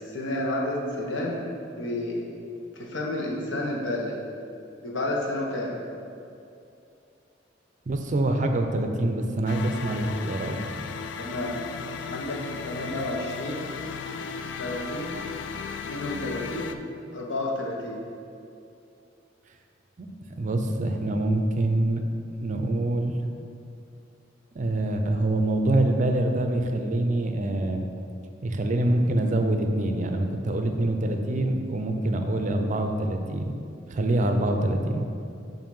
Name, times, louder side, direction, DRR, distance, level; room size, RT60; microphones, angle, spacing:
voice 1, 0.0-1.5 1.8-2.2 2.7-4.2 4.8-5.8 11.2-11.5 12.1-13.7 14.6-15.3 15.9-16.8 17.1-18.0, left 1 dB, 85° left, -2 dB, 1.0 m, -31 dB
voice 2, 7.9-10.6 20.0-20.1 20.4-22.0 22.4-23.2 24.5-27.9 28.4-33.5 33.9-35.1, right 1 dB, 40° right, 5 dB, 0.5 m, -25 dB
sound 1, 9.5-16.7, left 5 dB, 65° left, 0.3 m, -36 dB
7.5 x 2.7 x 5.3 m, 2.6 s
head